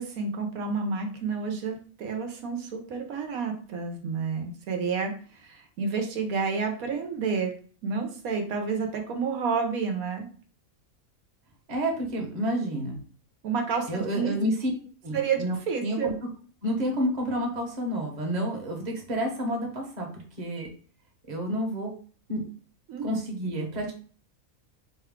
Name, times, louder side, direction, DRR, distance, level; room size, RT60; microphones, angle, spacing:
voice 1, 0.0-5.1 5.4-7.5 7.8-10.3 13.4-14.3 15.1-16.1 22.9-23.2, right 5 dB, 80° right, 3 dB, 1.1 m, -30 dB
voice 2, 11.7-13.0 13.9-14.7 15.0-15.6 15.8-16.1 16.6-20.7 21.3-21.9 22.3-22.4 23.0-23.9, equal, 35° right, 0 dB, 1.0 m, -29 dB
4.9 x 2.2 x 3.5 m, 0.42 s
omnidirectional pair, 1.5 m